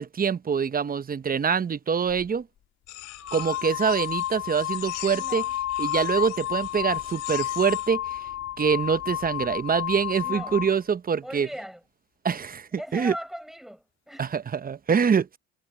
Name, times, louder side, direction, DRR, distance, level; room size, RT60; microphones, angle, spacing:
voice 1, 0.0-2.5 3.3-5.4 5.8-8.2 8.6-11.5 12.2-13.1 14.2-15.4, right 6 dB, 30° right, 0.9 m, -25 dB
sound 1, 2.1-2.3 3.1-10.8, left 12 dB, 60° left, 2.1 m, -31 dB
sound 2, 2.9-7.9, left 17 dB, 80° left, 3.3 m, -42 dB
voice 2, 5.1-5.5 10.2-10.6 11.2-11.8 12.8-14.4, equal, ahead, 6.0 m, -39 dB
supercardioid pair, 80°, 30 cm